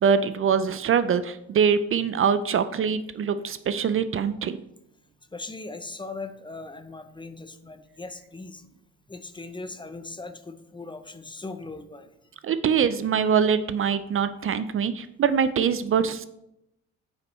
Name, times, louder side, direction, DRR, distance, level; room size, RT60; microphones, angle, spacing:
voice 1, 0.0-4.6 12.4-16.2, right 7 dB, 45° right, 12 dB, 0.4 m, -23 dB
voice 2, 5.3-8.6 9.1-12.1, left 3 dB, 15° left, 9 dB, 0.6 m, -39 dB
9.1 x 5.2 x 3.1 m, 0.84 s
cardioid pair, 90°, 30 cm